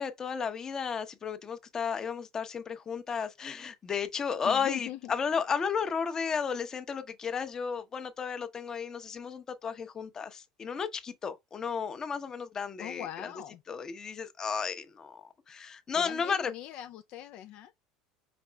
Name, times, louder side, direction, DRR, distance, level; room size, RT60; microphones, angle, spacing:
voice 1, 0.0-13.3 13.7-16.5, left 6 dB, 30° left, 0.7 m, -33 dB
voice 2, 4.4-5.1 12.8-13.6 16.0-17.7, left 12 dB, 60° left, 0.3 m, -42 dB
5.1 x 3.6 x 2.2 m
supercardioid pair, 120°, 2 cm